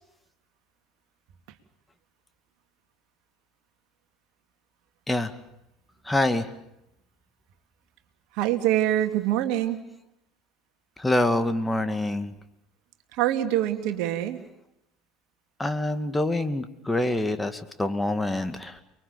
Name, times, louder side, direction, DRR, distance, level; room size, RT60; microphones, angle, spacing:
voice 1, 6.1-6.5 11.0-12.3 15.6-18.8, left 1 dB, 10° left, 8 dB, 2.3 m, -26 dB
voice 2, 8.3-9.8 13.1-14.4, right 12 dB, 60° right, 7 dB, 2.6 m, -24 dB
30.0 x 22.5 x 7.0 m, 0.85 s
figure-of-eight pair, 65°, 0 cm